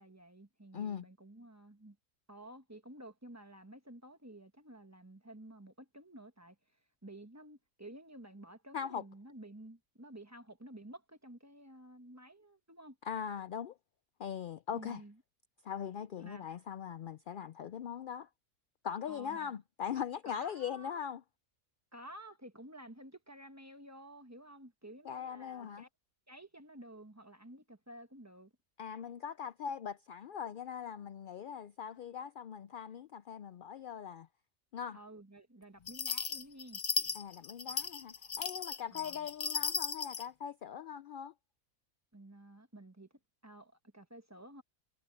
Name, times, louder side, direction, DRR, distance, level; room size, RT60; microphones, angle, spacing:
voice 1, 0.0-2.0 2.3-6.6 7.0-13.0 14.7-15.2 16.2-16.5 19.1-19.5 20.2-21.0 21.9-25.9 26.3-28.5 34.9-36.8 38.9-39.3 42.1-43.1 43.4-44.6, right 1 dB, 15° right, 1.1 m, -52 dB
voice 2, 0.7-1.1 8.7-9.0 13.0-13.8 14.2-15.0 15.6-18.3 18.8-21.2 25.0-25.8 28.8-34.3 34.7-35.0 37.1-41.3, left 8 dB, 75° left, 0.4 m, -41 dB
sound 1, 35.9-40.3, left 5 dB, 40° left, 0.7 m, -36 dB
omnidirectional pair, 1.4 m